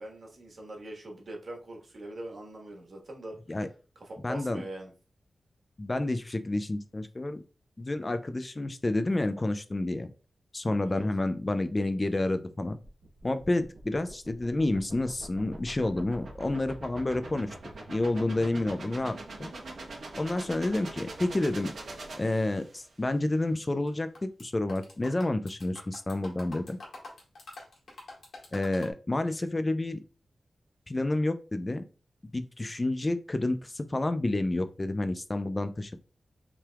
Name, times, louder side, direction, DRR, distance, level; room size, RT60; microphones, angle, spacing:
voice 1, 0.0-3.6 3.9-4.9 10.8-11.1, right 1 dB, 55° right, 0 dB, 1.4 m, -42 dB
voice 2, 4.2-4.6 5.8-7.4 7.8-10.1 10.5-12.8 13.2-17.5 17.9-19.5 20.2-21.7 22.2-26.8 28.5-30.0 30.9-31.8 32.3-36.0, left 2 dB, 25° left, 10 dB, 0.3 m, -29 dB
sound 1, 12.8-23.0, right 2 dB, 75° right, 1.0 m, -44 dB
sound 2, 23.9-24.4 24.7-28.9, left 2 dB, 80° left, 1.9 m, -46 dB
5.8 x 3.3 x 2.3 m, 0.34 s
wide cardioid pair, 145°, 0 cm